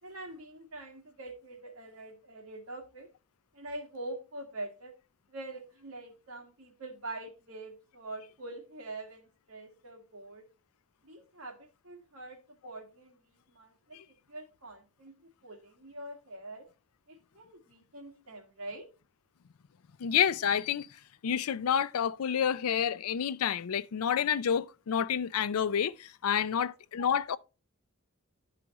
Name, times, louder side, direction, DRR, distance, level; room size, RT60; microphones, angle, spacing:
voice 1, 0.0-3.1 3.5-4.9 5.3-10.4 11.0-11.6 11.8-14.0 14.3-15.1 15.4-16.6 17.1-18.9 26.5-26.7, right 2 dB, 75° right, 1.9 m, -44 dB
voice 2, 20.0-20.9 21.2-27.4, left 8 dB, 85° left, 0.4 m, -29 dB
11.5 x 4.8 x 3.0 m
head